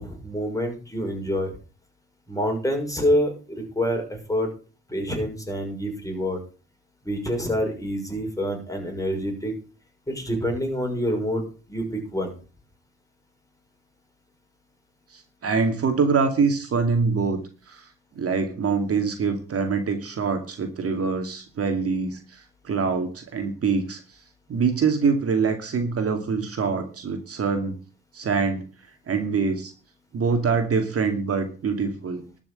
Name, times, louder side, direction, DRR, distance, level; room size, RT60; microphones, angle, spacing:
voice 1, 0.0-1.5 2.3-4.5 4.9-6.4 7.0-9.5 10.1-12.3, equal, 10° left, 2 dB, 6.1 m, -27 dB
voice 2, 15.1-17.4 17.7-17.9 18.1-24.0 24.5-27.8 28.1-28.6 29.1-29.7 30.1-32.2, right 5 dB, 50° right, 5 dB, 2.4 m, -24 dB
12.0 x 6.4 x 7.8 m, 0.36 s
cardioid pair, 90°, 30 cm